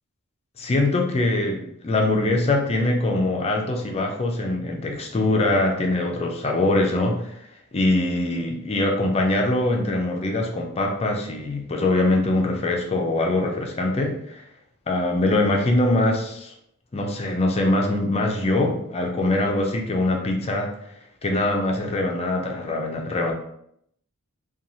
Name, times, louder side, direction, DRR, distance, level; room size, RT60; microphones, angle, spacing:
voice 1, 0.6-7.4 7.7-14.4 14.9-16.5 16.9-20.7 21.2-23.3, left 2 dB, 30° left, 2 dB, 0.4 m, -23 dB
2.9 x 2.3 x 2.6 m, 0.73 s
head